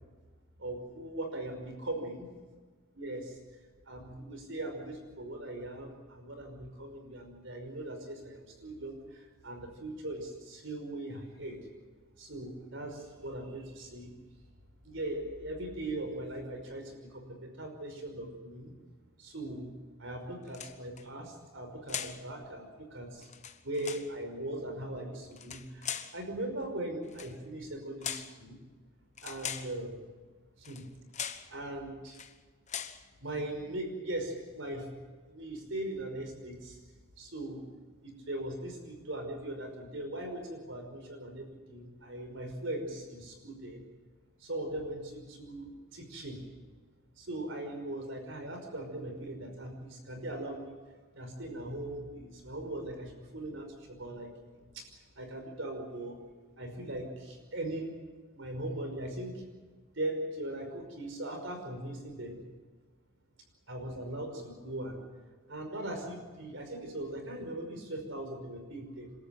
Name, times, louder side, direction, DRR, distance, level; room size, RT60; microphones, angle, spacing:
voice 1, 0.6-2.3 2.9-3.4 3.9-11.7 12.2-14.1 14.8-18.7 19.2-19.7 20.0-23.3 23.6-28.6 29.2-30.0 30.6-30.9 31.5-32.2 33.2-36.8 37.2-37.7 38.0-43.9 44.4-46.5 47.2-50.8 51.1-54.3 54.6-59.4 59.9-62.4 63.7-65.1 65.5-69.1, right 1 dB, 60° right, 5 dB, 5.5 m, -40 dB
sound 1, 20.5-21.0 21.9-22.2 23.2-24.1 25.3-26.2 27.1-27.3 28.0-28.4 29.2-29.7 30.6-30.9 31.1-31.5 32.1-32.3 32.7-33.0, left 8 dB, 35° left, 1.2 m, -40 dB
28.0 x 13.5 x 9.2 m, 1.4 s
head